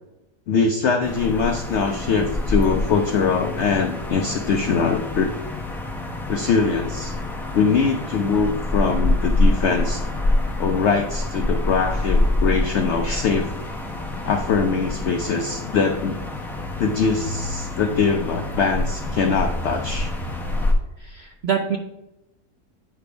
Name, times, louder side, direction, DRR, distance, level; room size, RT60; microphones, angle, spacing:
voice 1, 0.5-5.3 6.3-7.1 7.5-10.0 10.6-13.5 14.2-16.2 16.8-20.1, left 5 dB, 80° left, 5 dB, 0.6 m, -22 dB
sound 1, 1.0-20.7, left 1 dB, ahead, 0.5 m, -26 dB
voice 2, 21.0-21.8, right 7 dB, 70° right, 2 dB, 0.6 m, -25 dB
8.4 x 3.4 x 4.9 m, 0.91 s
omnidirectional pair, 1.8 m